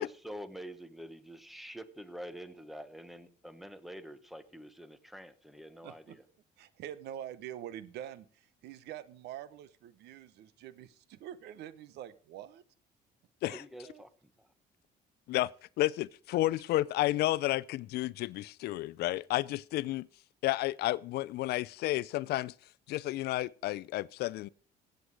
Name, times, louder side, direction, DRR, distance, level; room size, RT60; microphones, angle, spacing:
voice 1, 0.0-6.2 13.5-14.5, equal, ahead, 1.1 m, -47 dB
voice 2, 5.8-6.2 6.6-12.6 13.5-13.6 13.8-14.0, right 11 dB, 80° right, 1.0 m, -45 dB
voice 3, 15.8-20.1 20.4-22.5 22.9-24.5, left 16 dB, 75° left, 0.5 m, -31 dB
16.5 x 7.9 x 4.8 m
cardioid pair, 110°, 17 cm